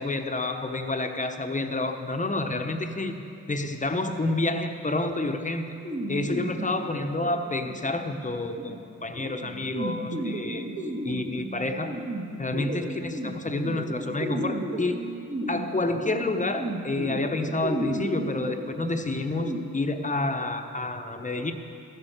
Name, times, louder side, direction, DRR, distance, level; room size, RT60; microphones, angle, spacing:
voice 1, 0.0-3.2 3.5-5.6 6.1-10.7 11.0-12.0 12.4-15.0 15.5-21.5, left 2 dB, 25° left, 6 dB, 0.9 m, -29 dB
sound 1, 5.8-19.6, right 1 dB, 50° right, 2.3 m, -34 dB
14.0 x 7.3 x 6.6 m, 2.6 s
cardioid pair, 60°, 31 cm